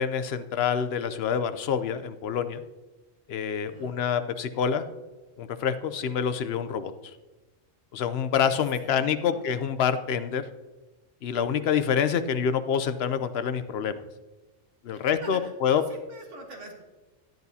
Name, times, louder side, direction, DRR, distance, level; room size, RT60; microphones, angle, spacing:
voice 1, 0.0-2.6 3.3-4.9 5.4-6.9 7.9-10.4 11.2-14.0 14.8-15.8, left 7 dB, 60° left, 11 dB, 0.8 m, -27 dB
voice 2, 3.6-4.0 8.4-9.5 14.9-16.8, right 2 dB, 65° right, 1 dB, 1.9 m, -45 dB
10.5 x 10.5 x 2.7 m, 1.2 s
omnidirectional pair, 1.3 m